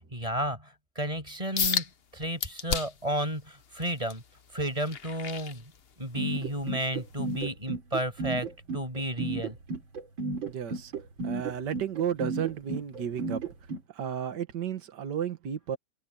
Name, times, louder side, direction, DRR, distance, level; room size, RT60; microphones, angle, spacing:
voice 1, 0.1-4.2 4.5-5.6 6.0-8.5 8.7-9.6, right 1 dB, 15° right, 6.7 m, -32 dB
sound 1, 1.6-1.9 2.4-3.1 3.6-6.2 6.6-6.9 7.4-7.5, left 7 dB, 45° left, 0.8 m, -32 dB
sound 2, 6.2-13.8, right 3 dB, 80° right, 4.6 m, -33 dB
voice 2, 10.5-10.9 11.2-13.4 14.0-15.8, right 8 dB, 60° right, 2.1 m, -33 dB
omnidirectional pair, 2.1 m